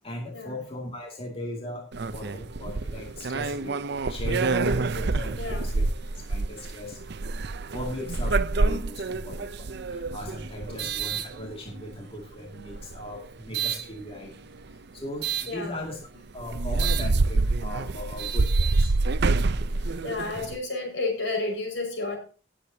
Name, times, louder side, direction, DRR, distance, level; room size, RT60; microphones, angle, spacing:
voice 1, 0.0-3.8 4.1-5.9 6.1-7.0 7.7-14.3 14.9-16.0 16.3-18.9, left 1 dB, 30° left, 0 dB, 2.4 m, -38 dB
sound 1, 1.9-12.0 12.6-13.8 15.2-15.5 16.0-16.1 16.4-20.6, right 3 dB, 60° right, 0.6 m, -27 dB
voice 2, 5.3-5.7 10.7-11.0 15.5-15.8 16.4-16.5 19.8-22.2, left 3 dB, 70° left, 3 dB, 5.7 m, -32 dB
18.5 x 8.6 x 2.8 m, 0.37 s
head